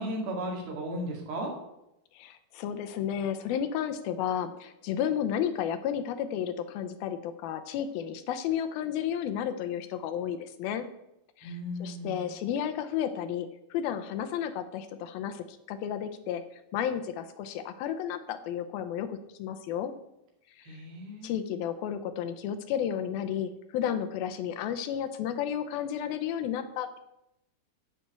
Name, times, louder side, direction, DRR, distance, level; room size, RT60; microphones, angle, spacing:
voice 1, 0.0-1.5 11.4-12.2 20.6-21.3, right 1 dB, 75° right, 1 dB, 4.1 m, -35 dB
voice 2, 2.1-10.9 11.4-16.4 16.7-19.9 20.6-20.8 21.2-27.0, left 9 dB, 80° left, 9 dB, 2.5 m, -32 dB
10.5 x 5.8 x 8.2 m, 0.84 s
omnidirectional pair, 4.5 m